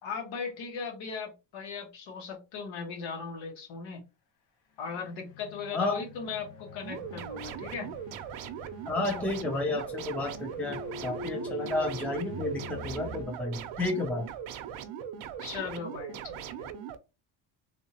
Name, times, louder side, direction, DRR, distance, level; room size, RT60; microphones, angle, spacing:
voice 1, 0.0-4.0 4.8-7.9 15.4-16.7, left 5 dB, 75° left, 3 dB, 1.5 m, -38 dB
sound 1, 5.0-13.2, left 1 dB, 55° left, 1.1 m, -44 dB
sound 2, 6.8-17.0, right 9 dB, 90° right, 0.7 m, -40 dB
voice 2, 8.9-14.3, left 2 dB, 5° left, 2 dB, 0.4 m, -31 dB
3.5 x 2.8 x 2.8 m, 0.28 s
cardioid pair, 170°, 47 cm